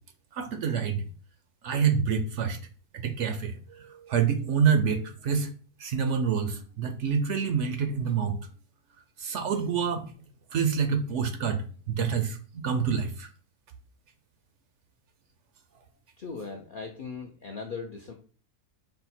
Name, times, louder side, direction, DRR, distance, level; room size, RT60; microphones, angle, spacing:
voice 1, 0.3-1.0 1.6-2.6 2.9-5.5 5.8-8.4 9.2-10.1 10.5-13.3, right 6 dB, 65° right, 0.8 m, -27 dB
voice 2, 16.2-18.1, left 4 dB, 60° left, 0.5 m, -38 dB
5.5 x 2.2 x 4.2 m
omnidirectional pair, 1.5 m